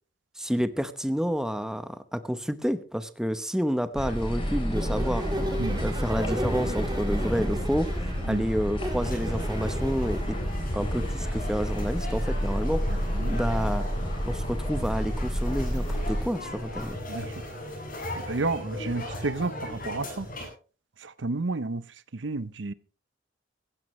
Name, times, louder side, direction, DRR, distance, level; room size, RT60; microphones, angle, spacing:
voice 1, 0.4-5.3 5.8-7.9 8.2-10.4 10.7-12.8 13.3-13.8 14.3-17.0, equal, 5° right, 0.9 m, -29 dB
sound 1, 3.9-16.3, equal, 30° left, 4.3 m, -30 dB
sound 2, 4.7-10.2, right 1 dB, 25° right, 2.3 m, -35 dB
voice 2, 5.6-5.9 8.3-8.4 13.1-13.4 17.1-17.3 18.3-20.3 21.0-21.8 22.2-22.7, right 3 dB, 75° right, 0.8 m, -31 dB
sound 3, 9.0-20.5, left 1 dB, 50° left, 7.8 m, -37 dB
17.0 x 15.5 x 3.2 m
head